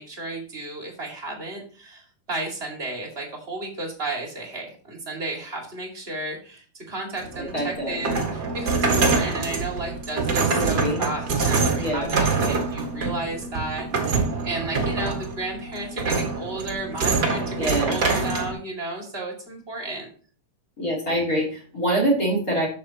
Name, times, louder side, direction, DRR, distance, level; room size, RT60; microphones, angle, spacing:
voice 1, 0.0-20.1, right 2 dB, 20° right, 0 dB, 2.0 m, -33 dB
sound 1, 7.2-18.5, right 4 dB, 40° right, 1.7 m, -25 dB
voice 2, 7.5-8.1 9.1-9.3 10.5-11.0 11.8-12.1 12.4-12.6 17.5-18.0 20.8-22.7, right 1 dB, 25° left, 0 dB, 3.3 m, -25 dB
11.5 x 7.4 x 2.9 m, 0.42 s
omnidirectional pair, 4.0 m